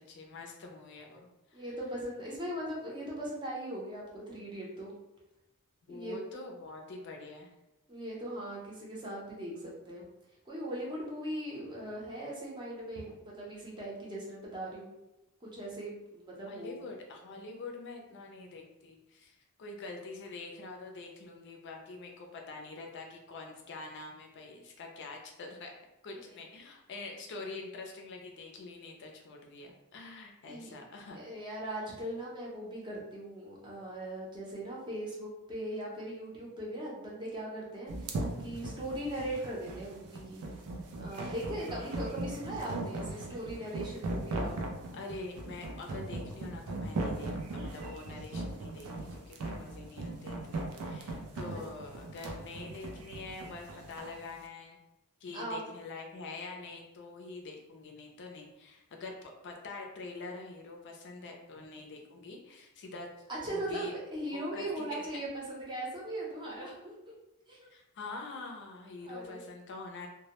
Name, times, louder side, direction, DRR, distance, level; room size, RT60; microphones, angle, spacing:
voice 1, 0.0-1.7 5.9-7.5 16.5-25.8 26.0-31.2 41.6-41.9 44.9-54.8 55.2-63.1 63.5-63.9 64.3-65.0 67.7-70.1, left 3 dB, 55° left, 2 dB, 0.4 m, -45 dB
voice 2, 1.5-4.9 5.9-6.2 7.9-10.1 10.5-14.9 15.4-16.8 26.2-26.3 30.5-30.7 31.1-37.9 38.4-40.4 41.0-44.6 51.5-51.6 55.3-55.6 63.3-66.9 67.5-67.7 69.0-69.4, right 1 dB, 20° right, -4 dB, 0.6 m, -39 dB
sound 1, 37.9-54.1, right 2 dB, 80° right, 0.4 m, -38 dB
2.1 x 2.0 x 2.9 m, 0.94 s
head